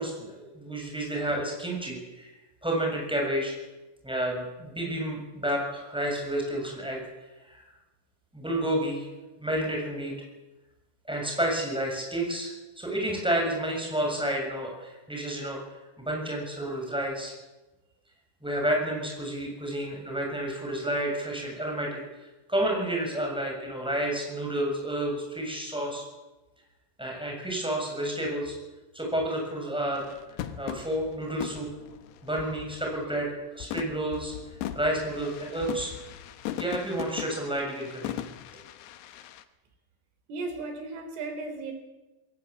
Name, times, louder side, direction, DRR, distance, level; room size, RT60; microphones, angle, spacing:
voice 1, 0.0-2.3 2.6-3.5 4.0-7.0 7.4-7.6 8.3-9.1 9.4-10.1 11.1-12.5 12.8-15.6 16.0-17.3 18.4-26.0 27.0-28.5 28.9-30.1 30.6-31.7 32.2-34.3 34.7-35.9 36.5-38.2, right 1 dB, ahead, 0 dB, 6.8 m, -30 dB
sound 1, 29.9-33.2 33.6-39.4, left 11 dB, 75° left, 2.5 m, -39 dB
voice 2, 40.3-41.7, right 3 dB, 70° right, 6 dB, 6.1 m, -36 dB
21.0 x 18.5 x 8.4 m, 1.1 s
omnidirectional pair, 5.9 m